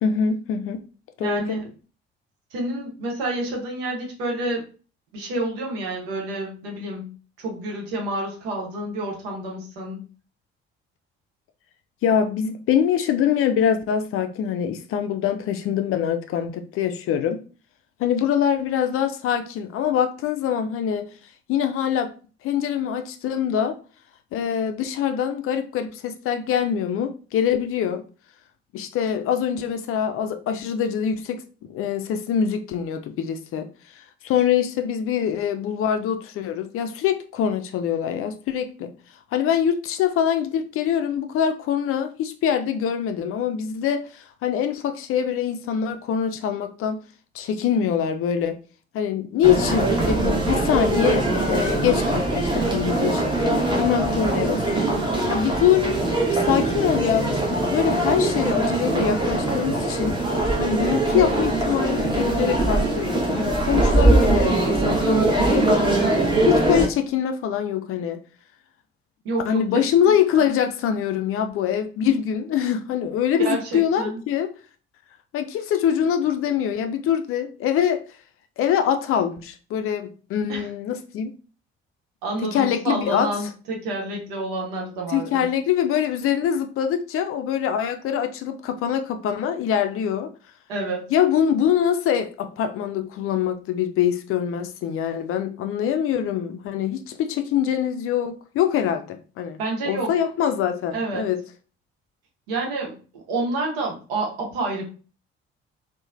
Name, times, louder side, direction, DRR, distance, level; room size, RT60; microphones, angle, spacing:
voice 1, 0.0-0.8 1.2-1.6 12.0-17.4 18.0-21.1 21.5-22.1 22.4-23.7 24.3-28.0 28.7-31.4 31.7-33.7 34.2-38.9 39.3-47.0 47.3-48.6 48.9-54.8 55.3-55.9 56.3-60.2 60.6-65.9 66.5-68.2 69.5-74.5 75.3-78.0 78.6-81.3 82.4-83.3 85.1-90.3 91.1-99.6 99.9-101.4, left 9 dB, 45° left, 7 dB, 0.4 m, -24 dB
voice 2, 1.2-1.6 2.5-4.7 5.1-7.1 7.4-10.0 69.2-69.6 70.1-70.4 73.4-74.2 80.5-80.7 82.2-85.5 90.7-91.1 99.6-100.1 100.9-101.2 102.5-104.8, right 2 dB, 70° right, 0 dB, 0.8 m, -29 dB
sound 1, 49.4-66.9, right 2 dB, 15° right, 0.8 m, -22 dB
2.9 x 2.1 x 2.4 m, 0.37 s
figure-of-eight pair, 45°, 31 cm